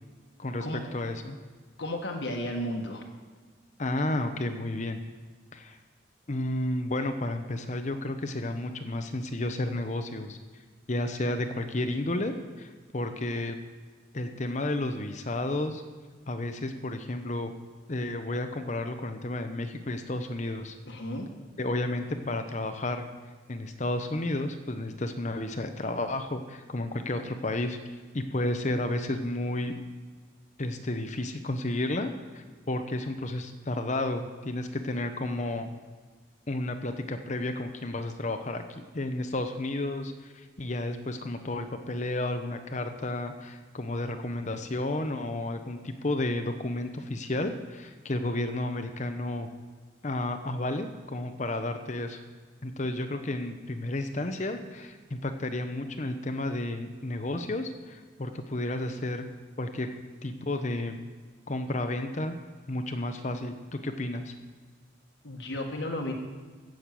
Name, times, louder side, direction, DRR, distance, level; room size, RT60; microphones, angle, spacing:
voice 1, 0.9-1.4 3.8-5.0 5.5-5.8 6.3-10.4 10.9-13.6 14.1-15.8 16.3-17.5 17.9-20.8 21.6-23.1 23.5-27.8 28.1-29.7 30.6-35.7 36.5-49.5 50.0-52.2 52.6-59.2 59.6-59.9 60.2-61.0 61.5-62.4 62.7-64.3, left 1 dB, 35° left, 7 dB, 0.8 m, -32 dB
voice 2, 1.8-3.0 20.9-21.3 65.2-66.1, left 1 dB, 65° left, 1 dB, 1.5 m, -33 dB
15.5 x 6.5 x 7.6 m, 1.5 s
head